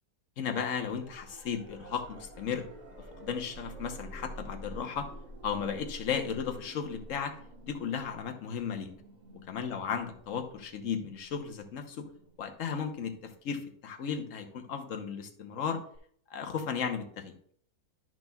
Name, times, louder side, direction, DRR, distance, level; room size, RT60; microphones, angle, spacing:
voice 1, 0.4-2.6 3.2-5.1 5.4-7.3 7.6-8.9 9.5-12.1 12.4-15.8 16.3-17.3, left 7 dB, 60° left, 5 dB, 1.3 m, -35 dB
sound 1, 0.7-13.6 15.9-16.0, right 1 dB, 30° right, 1.2 m, -49 dB
12.0 x 6.2 x 2.3 m, 0.62 s
omnidirectional pair, 1.6 m